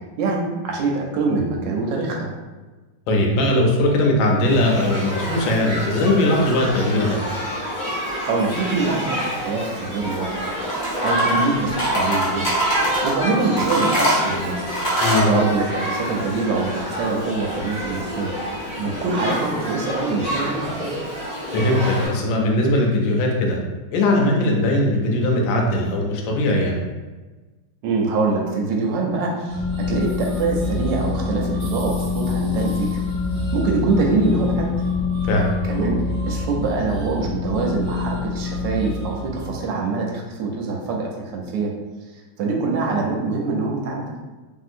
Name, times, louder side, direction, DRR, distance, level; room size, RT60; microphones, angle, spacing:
voice 1, 0.2-2.3 8.0-10.5 11.0-12.5 13.0-14.6 15.2-18.3 18.8-21.0 27.8-33.0 33.5-34.7 35.6-41.8 42.4-44.1, right 3 dB, 80° right, 0 dB, 1.3 m, -24 dB
voice 2, 3.1-7.2 15.0-15.4 21.5-23.6 23.9-26.8 35.2-35.5, left 1 dB, 85° left, 0 dB, 1.3 m, -19 dB
Shout / Human group actions, 4.5-22.1, equal, 25° left, 0.9 m, -28 dB
sound 1, 10.6-11.5 11.8-13.1 13.6-15.3, right 1 dB, 50° left, 1.1 m, -22 dB
sound 2, 29.5-39.6, left 4 dB, 45° right, 1.2 m, -26 dB
3.0 x 2.7 x 2.5 m, 1.2 s
omnidirectional pair, 2.0 m